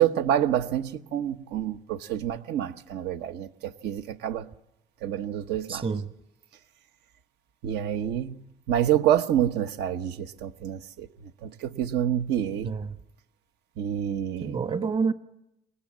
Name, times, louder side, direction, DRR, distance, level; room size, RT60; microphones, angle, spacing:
voice 1, 0.0-4.5 5.0-5.9 7.6-12.8 13.8-14.6, right 10 dB, 80° right, 1.2 m, -27 dB
voice 2, 5.7-6.1 12.6-13.0 14.4-15.1, right 5 dB, 30° right, 1.3 m, -28 dB
27.5 x 23.5 x 7.4 m
cardioid pair, 110°, 17 cm